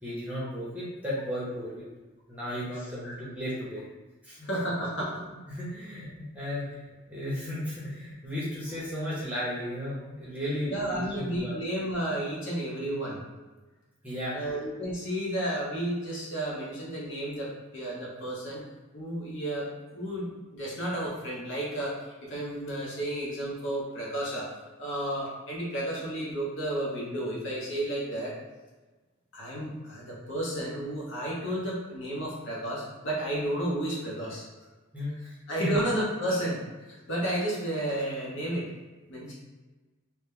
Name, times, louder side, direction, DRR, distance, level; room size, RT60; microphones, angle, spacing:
voice 1, 0.0-1.8 2.3-3.8 4.2-4.4 5.5-6.8 7.1-11.6 14.0-14.5 34.9-35.9, equal, 5° right, -8 dB, 0.7 m, -35 dB
voice 2, 4.4-5.2 10.7-13.2 14.3-18.6 18.9-24.5 24.8-28.4 29.3-34.4 35.5-38.7 39.1-39.3, right 1 dB, 55° left, -5 dB, 0.9 m, -32 dB
3.0 x 2.1 x 3.5 m, 1.2 s
head